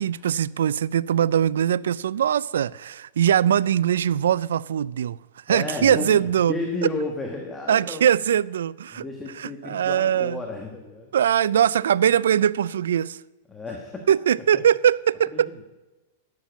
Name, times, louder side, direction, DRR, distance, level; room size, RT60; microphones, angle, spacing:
voice 1, 0.0-5.2 5.5-6.5 7.7-9.0 9.4-10.4 11.1-13.2 14.1-15.5, right 9 dB, 90° right, 0.3 m, -21 dB
voice 2, 5.5-8.0 8.9-11.1 13.5-14.1 14.5-14.6 15.3-15.6, left 2 dB, 10° left, 1.3 m, -32 dB
11.5 x 7.3 x 8.9 m
supercardioid pair, 150°, 0 cm